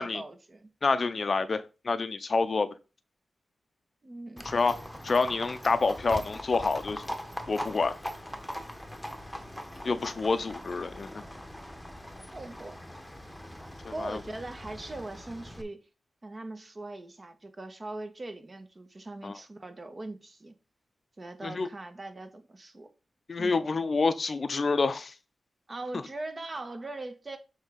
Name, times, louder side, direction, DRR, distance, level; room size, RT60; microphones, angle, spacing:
voice 1, 0.0-0.7 4.0-4.5 12.3-12.8 13.9-15.8 16.2-20.5 21.2-22.9 23.4-23.6 25.7-27.4, right 2 dB, 35° right, 1.4 m, -40 dB
voice 2, 0.8-2.7 4.4-4.8 5.0-7.0 7.5-8.0 9.8-11.2 14.0-14.2 19.2-19.4 21.4-21.7 23.3-25.1, left 4 dB, 50° left, 0.6 m, -28 dB
Livestock farm animals working animals, 4.4-15.6, equal, 5° left, 1.2 m, -41 dB
7.2 x 3.5 x 5.2 m
cardioid pair, 70°, 0 cm